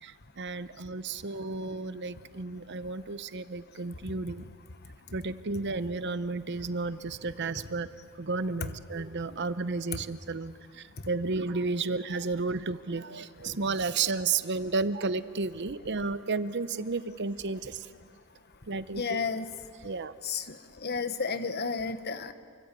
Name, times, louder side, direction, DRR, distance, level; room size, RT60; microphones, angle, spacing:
voice 1, 0.0-4.5 5.1-7.9 8.1-17.9 18.7-19.2 19.8-20.1, right 4 dB, 50° right, 13 dB, 0.8 m, -32 dB
voice 2, 19.0-19.5 20.2-20.6 20.8-22.3, left 5 dB, 45° left, 10 dB, 1.3 m, -31 dB
29.0 x 24.0 x 8.4 m, 2.1 s
head